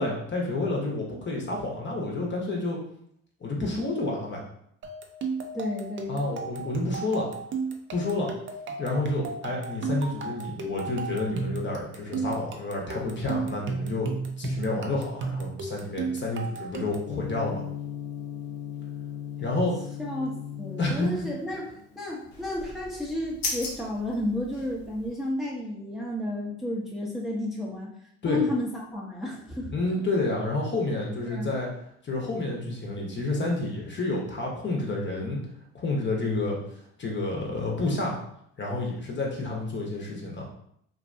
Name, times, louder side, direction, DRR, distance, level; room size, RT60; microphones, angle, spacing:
voice 1, 0.0-2.8 3.4-4.4 6.1-7.3 7.9-8.3 8.8-17.6 19.4-19.8 20.8-21.2 28.2-28.4 29.7-31.7 32.0-35.4 35.7-36.6 37.0-38.2 38.6-40.5, left 2 dB, 35° left, -1 dB, 0.8 m, -29 dB
sound 1, 4.8-17.1, right 4 dB, 40° right, 0.5 m, -34 dB
voice 2, 5.5-6.2 20.0-21.7 22.0-27.9 28.3-30.0 31.3-31.5, left 1 dB, ahead, -4 dB, 0.7 m, -32 dB
Gong, 17.1-25.1, left 10 dB, 50° left, 0.4 m, -39 dB
sound 2, 22.3-25.1, left 2 dB, 80° left, 0.8 m, -37 dB
2.6 x 2.2 x 2.5 m, 0.70 s
hypercardioid pair, 60°, 32 cm